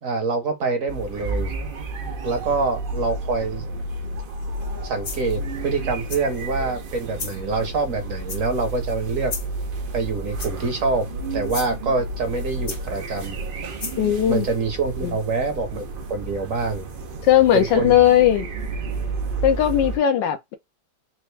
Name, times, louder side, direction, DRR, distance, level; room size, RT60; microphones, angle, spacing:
voice 1, 0.0-1.5 2.2-3.6 4.8-9.3 9.9-11.1 11.3-13.4 14.3-15.8 16.1-16.9 17.5-17.9, right 3 dB, 55° right, 1.1 m, -25 dB
sound 1, 0.9-20.0, right 2 dB, 85° right, 0.4 m, -31 dB
sound 2, 4.5-4.7 5.0-5.4 6.1-6.5 7.1-7.4 8.3-8.7 9.3-9.6 10.4-10.8 11.4-11.7 12.7-13.1 13.8-14.0, left 5 dB, 65° left, 1.6 m, -34 dB
voice 2, 14.0-14.5 15.0-15.2 17.2-18.4 19.4-20.5, left 11 dB, 85° left, 1.4 m, -18 dB
4.3 x 2.5 x 3.2 m
omnidirectional pair, 1.9 m